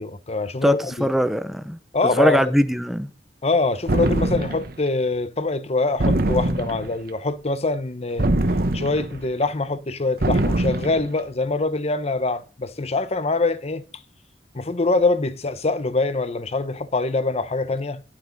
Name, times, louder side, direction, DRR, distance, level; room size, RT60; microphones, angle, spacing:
voice 1, 0.0-1.1 1.9-2.4 3.4-8.3 8.7-13.8 14.5-18.0, left 3 dB, 35° left, 0.8 m, -24 dB
voice 2, 0.6-1.8 2.1-3.1, equal, ahead, 0.7 m, -21 dB
sound 1, 3.9-4.8 6.0-7.0 8.2-9.2 10.2-11.1, right 1 dB, 55° right, 1.2 m, -22 dB
11.5 x 8.6 x 4.1 m
head